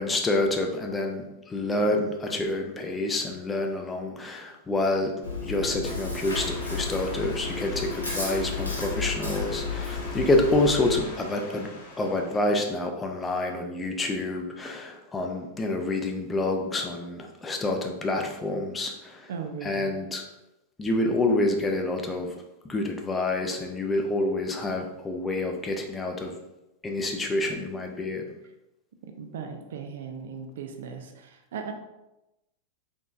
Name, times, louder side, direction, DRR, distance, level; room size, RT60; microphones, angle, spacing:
voice 1, 0.0-5.1 5.4-11.7 12.0-19.3 19.6-20.2 20.8-22.3 22.6-26.4 26.8-28.2, left 2 dB, 15° left, 3 dB, 0.5 m, -28 dB
Chewing mastication, 5.2-11.0, left 4 dB, 75° left, 1.1 m, -32 dB
sound 1, 6.2-12.6, left 1 dB, 55° left, 1.0 m, -41 dB
voice 2, 19.3-19.9 29.2-31.7, right 6 dB, 60° right, 5 dB, 0.5 m, -37 dB
3.8 x 3.8 x 2.5 m, 0.93 s
figure-of-eight pair, 90°, 0 cm